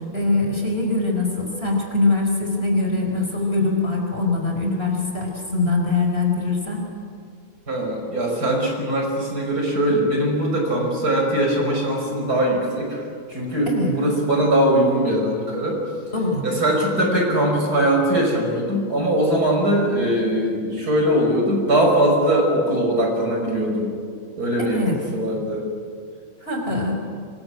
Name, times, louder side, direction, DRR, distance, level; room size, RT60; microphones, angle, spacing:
voice 1, 0.1-6.8 13.7-13.9 16.1-16.4 24.6-25.0 26.4-27.0, left 3 dB, 25° left, 1 dB, 5.1 m, -22 dB
voice 2, 7.7-15.8 16.4-23.9 24.4-24.8 25.1-25.7, right 1 dB, 45° right, 0 dB, 6.0 m, -21 dB
25.5 x 22.0 x 9.9 m, 2.2 s
omnidirectional pair, 2.3 m